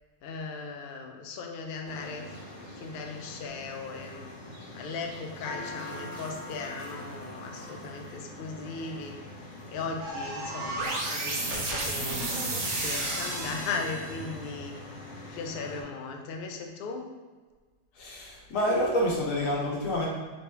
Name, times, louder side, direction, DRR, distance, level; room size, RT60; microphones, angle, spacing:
voice 1, 0.2-4.3 4.7-9.1 9.7-12.2 12.7-14.7 15.3-17.1, left 4 dB, 60° left, 3 dB, 0.6 m, -38 dB
sound 1, 1.8-15.8, left 1 dB, 45° left, 0.9 m, -43 dB
sound 2, 10.0-14.3, right 2 dB, 85° right, 1.3 m, -32 dB
voice 2, 17.9-20.1, equal, 90° left, -3 dB, 1.3 m, -28 dB
3.9 x 2.8 x 3.7 m, 1.4 s
omnidirectional pair, 1.3 m